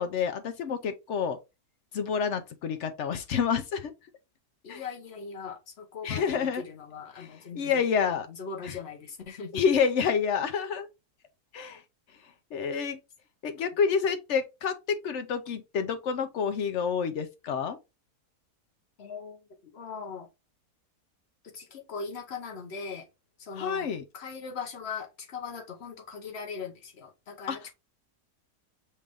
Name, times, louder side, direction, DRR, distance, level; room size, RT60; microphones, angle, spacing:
voice 1, 0.0-1.4 1.9-3.9 4.7-4.8 6.0-6.6 7.2-7.3 7.6-8.3 8.6-8.7 9.5-10.9 11.5-11.8 12.5-13.0 13.4-17.8 23.6-24.0 27.5-27.6, left 6 dB, 65° left, 0.7 m, -28 dB
voice 2, 4.6-9.6 19.0-20.3 21.4-23.1 23.4-23.9 24.1-27.7, left 5 dB, 45° left, 1.1 m, -40 dB
5.3 x 2.5 x 3.4 m
omnidirectional pair, 1.7 m